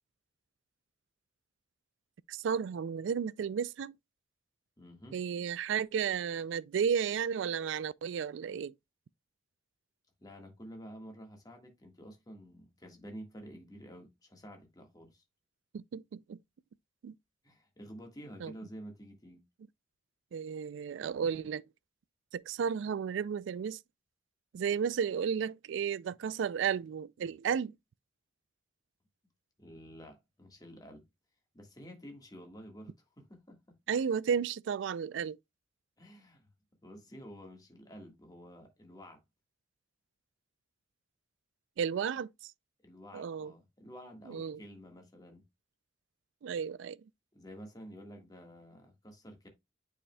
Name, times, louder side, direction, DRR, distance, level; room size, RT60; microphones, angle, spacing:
voice 1, 2.3-4.0 5.1-8.7 15.7-16.4 17.0-17.1 18.4-18.5 20.3-21.6 22.3-23.8 24.5-27.8 33.9-35.4 41.8-42.5 43.1-43.5 44.3-44.6 46.4-47.0, right 7 dB, 70° right, 0.3 m, -33 dB
voice 2, 4.8-5.1 10.2-15.2 17.4-19.4 29.6-31.0 31.5-33.6 36.0-36.5 36.8-39.2 42.8-45.4 47.3-49.5, equal, 20° left, 1.5 m, -50 dB
8.5 x 5.0 x 2.2 m
head